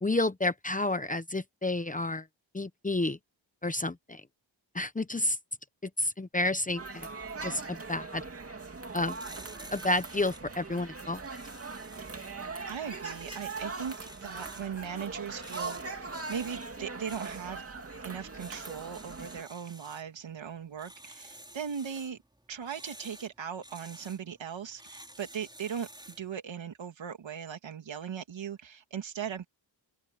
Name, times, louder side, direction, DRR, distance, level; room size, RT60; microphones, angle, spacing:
voice 1, 0.0-2.2 2.5-3.2 3.6-4.2 4.7-5.4 5.8-7.1 7.4-8.3 8.9-9.2 9.7-11.2, left 2 dB, 15° left, 0.9 m, -30 dB
sound 1, 6.8-19.4, right 4 dB, 30° right, 2.7 m, -41 dB
sound 2, 8.7-26.3, right 1 dB, 10° right, 5.2 m, -52 dB
voice 2, 12.7-17.6 18.0-22.2 22.5-29.4, right 7 dB, 70° right, 2.9 m, -39 dB
open air
wide cardioid pair, 115°, 47 cm